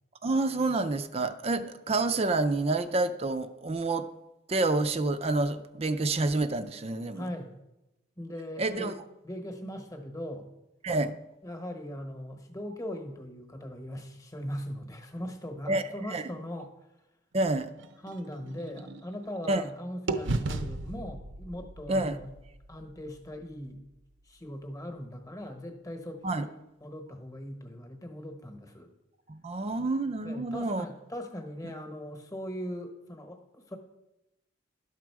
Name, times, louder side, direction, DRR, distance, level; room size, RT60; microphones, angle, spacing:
voice 1, 0.2-4.1 4.5-7.3 8.6-8.9 10.8-11.1 15.7-15.8 16.1-16.2 17.3-17.7 19.5-19.6 21.9-22.1 26.2-26.5 29.3-30.8, right 2 dB, 30° right, 11 dB, 0.4 m, -28 dB
voice 2, 7.1-7.5 8.2-8.9 9.2-10.5 11.4-16.7 18.0-22.3 22.7-23.8 24.3-28.9 30.2-33.8, equal, 15° left, 5 dB, 1.1 m, -40 dB
sound 1, 17.4-19.7 20.1-24.0, right 2 dB, 70° right, 0.7 m, -37 dB
12.0 x 6.1 x 4.6 m, 0.94 s
head